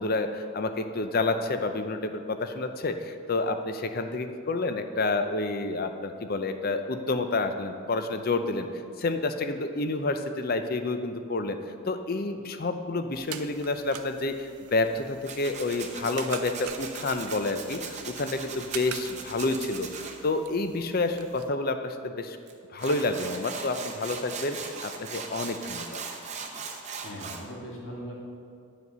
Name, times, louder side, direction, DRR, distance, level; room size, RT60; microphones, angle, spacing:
voice 1, 0.0-8.7 9.0-11.6 11.8-17.8 18.0-22.4 22.7-26.0, left 2 dB, 40° left, 8 dB, 0.5 m, -29 dB
sound 1, 13.1-21.5, right 9 dB, 75° right, 0.5 m, -45 dB
Tools, 15.2-20.1 22.5-22.6 22.8-27.4, right 5 dB, 30° right, 0.8 m, -39 dB
voice 2, 27.0-28.1, equal, 55° left, -3 dB, 2.0 m, -39 dB
9.4 x 5.1 x 6.7 m, 2.3 s
head